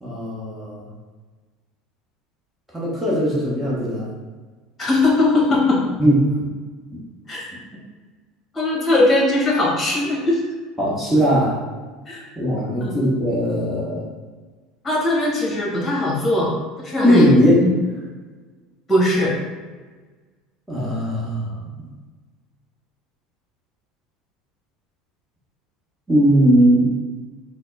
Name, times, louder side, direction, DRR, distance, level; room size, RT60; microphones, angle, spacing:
voice 1, 0.0-0.9 2.7-4.1 6.0-6.5 6.9-7.0 10.8-11.6 12.4-14.1 17.0-17.7 20.7-21.9 26.1-26.9, equal, 10° right, -6 dB, 1.2 m, -19 dB
voice 2, 4.8-5.8 7.3-7.5 8.5-10.4 12.1-12.2 12.8-12.9 14.8-16.5 16.8-17.7 18.9-19.3, left 2 dB, 25° left, -2 dB, 1.4 m, -19 dB
4.0 x 2.1 x 3.9 m, 1.4 s
hypercardioid pair, 75°, 0 cm